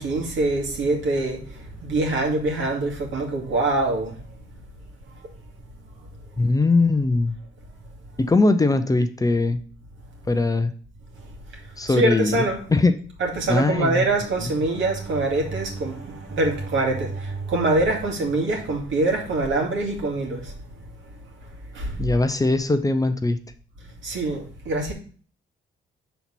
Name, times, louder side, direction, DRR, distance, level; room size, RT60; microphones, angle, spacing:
voice 1, 0.0-4.1 11.9-12.6 13.2-20.5 21.7-22.0 24.0-24.9, right 2 dB, 75° right, 2.3 m, -24 dB
voice 2, 6.4-7.4 8.2-9.6 10.3-10.7 11.8-12.4 12.7-13.0 13.5-14.0 22.0-23.4, left 2 dB, 15° left, 0.6 m, -20 dB
5.7 x 4.1 x 6.1 m
cardioid pair, 90°, 20 cm